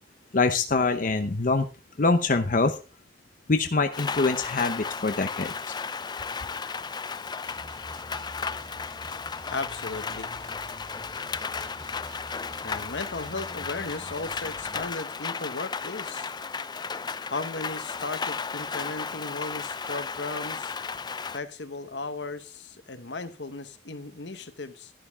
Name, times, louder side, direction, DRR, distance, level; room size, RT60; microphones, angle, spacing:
voice 1, 0.3-1.7 2.0-2.8 3.5-5.7, left 3 dB, 50° left, 8 dB, 0.8 m, -24 dB
Rain, 3.9-21.4, left 5 dB, 25° left, 0.4 m, -34 dB
sound 1, 7.4-14.9, right 1 dB, 25° right, 1.9 m, -47 dB
voice 2, 9.5-10.3 12.6-16.3 17.3-20.7 21.3-24.9, left 3 dB, 75° left, 10 dB, 1.3 m, -36 dB
11.5 x 11.5 x 3.6 m, 0.32 s
head